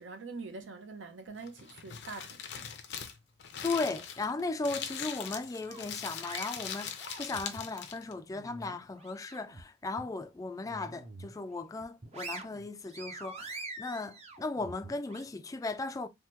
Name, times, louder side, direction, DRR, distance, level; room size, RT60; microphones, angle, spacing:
voice 1, 0.0-2.7, right 4 dB, 75° right, 0.7 m, -44 dB
Crumpling crinkling, 1.3-8.1, left 7 dB, 65° left, 0.6 m, -41 dB
voice 2, 3.6-16.1, left 3 dB, 20° left, 0.3 m, -36 dB
sound 1, 5.7-7.7 8.1-9.6 10.0-10.1 10.6-11.4 11.8-15.2, right 3 dB, 35° right, 0.6 m, -45 dB
3.5 x 2.1 x 2.9 m
head